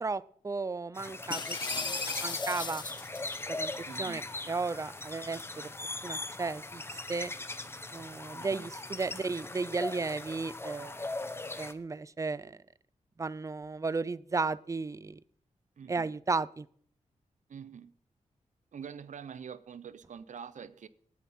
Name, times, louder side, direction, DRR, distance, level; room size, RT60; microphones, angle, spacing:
voice 1, 0.0-2.8 3.5-3.7 4.0-5.7 6.0-7.3 7.9-11.0 11.6-12.6 13.2-15.2 15.9-16.7, right 4 dB, 25° right, 0.4 m, -34 dB
sound 1, 0.9-11.7, left 2 dB, 20° left, 0.9 m, -39 dB
sound 2, 1.3-3.4, left 5 dB, 35° left, 0.5 m, -38 dB
voice 2, 3.9-4.2 8.3-8.6 15.8-16.1 17.5-17.9 18.7-20.9, right 7 dB, 70° right, 0.8 m, -45 dB
19.0 x 10.5 x 4.3 m
wide cardioid pair, 115°, 13 cm